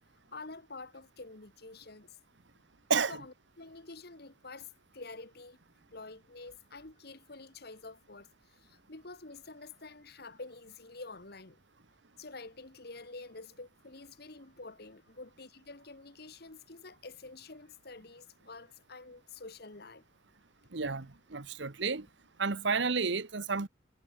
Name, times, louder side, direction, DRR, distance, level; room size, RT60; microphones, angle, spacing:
voice 1, 0.3-2.2 3.1-5.6 5.9-11.6 12.2-20.0, left 3 dB, 55° left, 1.9 m, -48 dB
voice 2, 20.7-22.1 22.4-23.7, right 4 dB, 65° right, 1.2 m, -31 dB
head